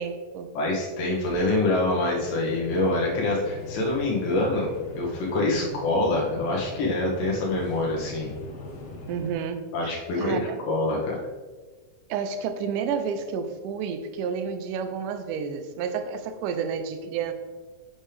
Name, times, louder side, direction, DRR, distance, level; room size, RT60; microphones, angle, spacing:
voice 1, 0.0-0.5 5.4-5.7 9.1-10.6 12.1-17.3, right 6 dB, 85° right, 9 dB, 2.2 m, -31 dB
voice 2, 0.5-8.3 9.7-11.2, left 2 dB, 90° left, -3 dB, 2.9 m, -26 dB
sound 1, 0.9-9.3, left 2 dB, 60° left, 1.5 m, -41 dB
sound 2, 1.2-4.8, right 2 dB, 30° right, 2.1 m, -38 dB
7.3 x 7.2 x 3.4 m, 1.3 s
omnidirectional pair, 3.7 m